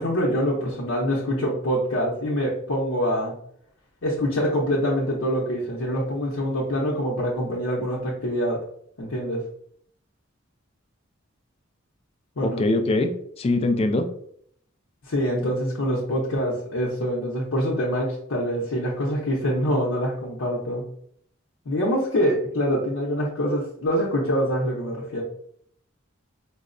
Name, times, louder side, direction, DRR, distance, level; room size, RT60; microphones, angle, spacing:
voice 1, 0.0-3.3 4.0-8.6 9.0-9.4 12.4-12.6 15.1-20.8 21.7-25.2, equal, 85° left, -5 dB, 0.7 m, -25 dB
voice 2, 12.4-13.1 13.4-14.1, left 2 dB, 30° left, 6 dB, 0.3 m, -22 dB
4.4 x 2.0 x 2.5 m, 0.65 s
head